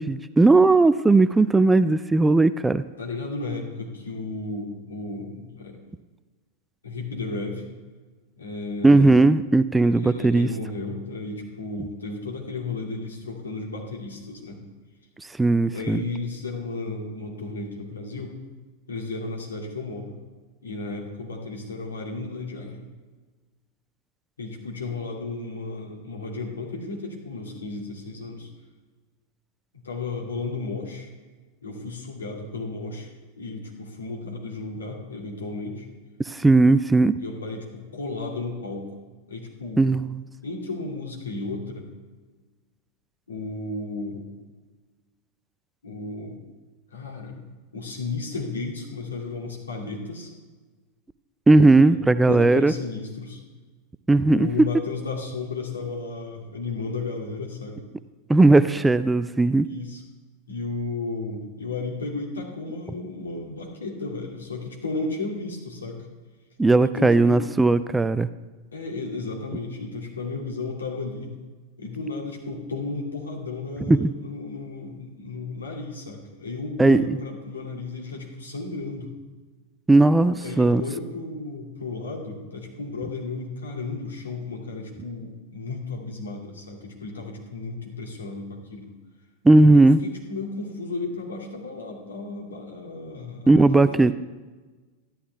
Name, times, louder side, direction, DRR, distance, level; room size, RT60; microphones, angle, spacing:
voice 1, 0.0-2.8 8.8-10.5 15.4-16.0 36.3-37.2 39.8-40.2 51.5-52.7 54.1-54.5 58.3-59.7 66.6-68.3 73.9-74.1 76.8-77.2 79.9-80.8 89.4-90.0 93.5-94.1, right 2 dB, 10° right, 14 dB, 0.4 m, -17 dB
voice 2, 3.0-5.8 6.8-7.6 8.4-9.1 9.8-14.6 15.7-18.3 18.9-20.1 20.6-22.8 24.4-28.5 29.7-31.1 31.6-33.1 33.4-35.9 37.2-38.9 39.3-39.8 40.4-41.9 43.3-44.3 45.8-46.4 46.9-47.5 47.7-50.3 51.8-53.4 54.3-57.8 59.7-60.0 60.5-66.1 66.8-67.5 68.7-71.3 71.8-79.1 80.4-88.9 89.7-94.1, left 3 dB, 80° left, -1 dB, 2.5 m, -34 dB
12.5 x 11.0 x 3.4 m, 1.3 s
figure-of-eight pair, 90°, 0 cm